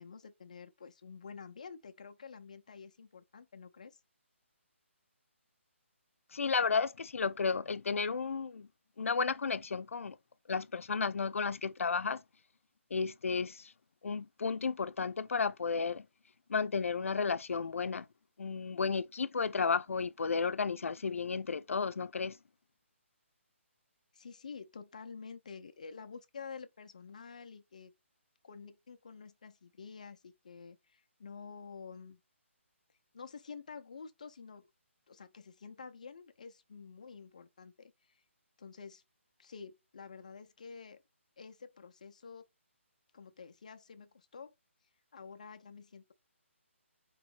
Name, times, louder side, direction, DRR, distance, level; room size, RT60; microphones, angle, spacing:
voice 1, 0.0-4.0 24.1-27.9 28.4-32.2 33.1-34.7 35.1-38.2 38.6-39.0 39.4-41.0 41.4-42.4 43.1-44.5 45.1-46.1, left 5 dB, 35° left, 0.4 m, -49 dB
voice 2, 6.3-8.7 9.0-10.2 10.5-12.2 12.9-13.7 14.0-16.0 16.5-18.0 18.4-22.4, left 5 dB, 90° left, 0.4 m, -33 dB
3.8 x 3.0 x 3.3 m
hypercardioid pair, 180°, 7 cm